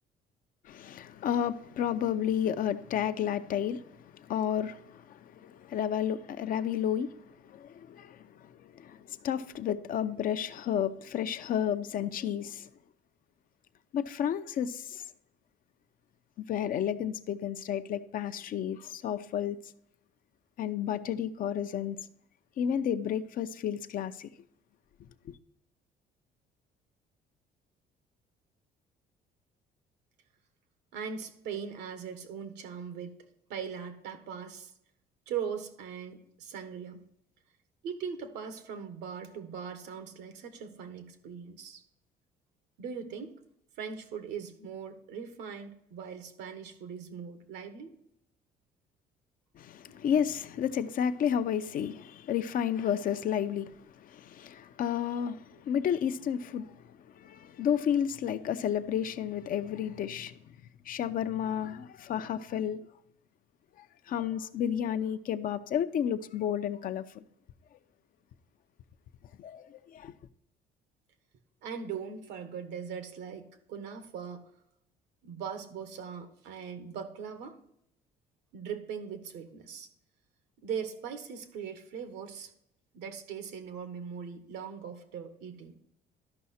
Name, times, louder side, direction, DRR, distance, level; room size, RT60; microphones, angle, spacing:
voice 1, 0.6-12.7 13.9-15.0 16.4-19.6 20.6-22.0 22.6-24.3 25.3-25.4 49.6-56.8 57.1-60.4 60.9-62.8 64.1-67.2 69.4-70.1, left 9 dB, 55° left, 0.6 m, -32 dB
voice 2, 30.9-33.2 33.5-34.7 35.3-37.0 37.8-41.8 42.8-43.3 43.8-48.0 49.9-50.0 71.6-74.5 75.2-77.6 78.5-79.9 80.6-82.5 82.9-85.7, right 7 dB, 85° right, 1.3 m, -40 dB
12.5 x 5.6 x 4.2 m
cardioid pair, 110°, 17 cm